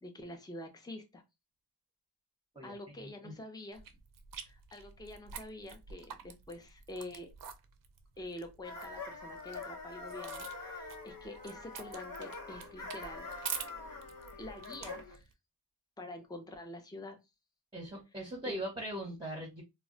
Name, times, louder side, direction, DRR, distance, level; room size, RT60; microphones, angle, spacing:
voice 1, 0.0-1.2 2.6-3.8 4.4-7.3 8.2-13.7 14.4-15.3 16.0-17.2 18.2-18.6, left 1 dB, 10° left, 4 dB, 0.6 m, -47 dB
voice 2, 2.5-3.3 17.7-19.6, right 1 dB, 10° right, -1 dB, 0.9 m, -41 dB
sound 1, 3.7-15.3, right 6 dB, 55° right, 0.5 m, -47 dB
sound 2, 8.6-15.2, left 3 dB, 55° left, 0.9 m, -45 dB
2.2 x 2.1 x 3.8 m, 0.23 s
wide cardioid pair, 90°, 40 cm